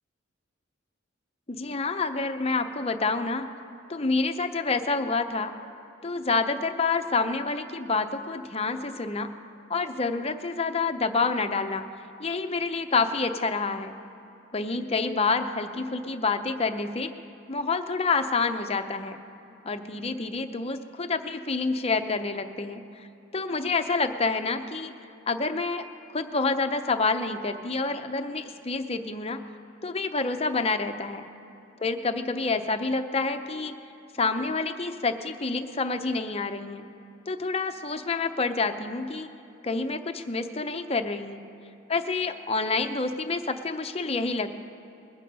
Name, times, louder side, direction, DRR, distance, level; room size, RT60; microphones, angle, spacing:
voice 1, 1.5-3.5 3.9-5.5 6.0-9.3 9.7-11.8 12.2-13.9 14.5-17.1 17.5-19.2 19.6-23.1 23.3-24.9 25.3-25.8 26.1-29.4 29.8-31.2 31.8-33.7 34.1-36.9 37.3-39.3 39.6-41.4 41.9-44.6, left 3 dB, 30° left, 7 dB, 0.7 m, -28 dB
21.0 x 8.5 x 5.4 m, 2.8 s
head